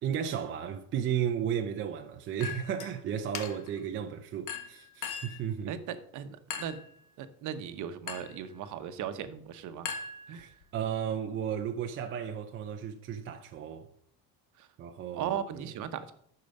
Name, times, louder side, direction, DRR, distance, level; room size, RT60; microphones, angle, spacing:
voice 1, 0.0-5.7 10.3-13.9 14.8-15.4, right 8 dB, 30° right, 0.5 m, -34 dB
Chink clink, 2.4-2.9 3.3-3.8 4.5-5.4 6.5-6.9 8.1-8.4 9.8-10.6, left 6 dB, 45° left, 1.4 m, -39 dB
voice 2, 5.7-6.8 7.2-9.9 10.3-10.5 14.6-14.7 15.1-16.1, right 9 dB, 45° right, 1.0 m, -37 dB
10.5 x 6.6 x 5.4 m
cardioid pair, 155°, 42 cm